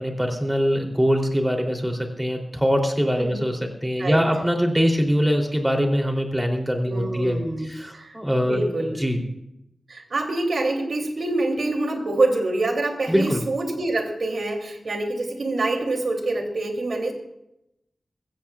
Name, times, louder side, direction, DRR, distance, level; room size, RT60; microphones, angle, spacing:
voice 1, 0.0-8.6 9.0-9.2 13.1-13.4, equal, 10° right, 2 dB, 3.1 m, -23 dB
voice 2, 6.9-9.0 9.9-17.1, right 2 dB, 70° right, 3 dB, 2.9 m, -26 dB
21.5 x 16.5 x 2.4 m, 0.84 s
wide cardioid pair, 70°, 0 cm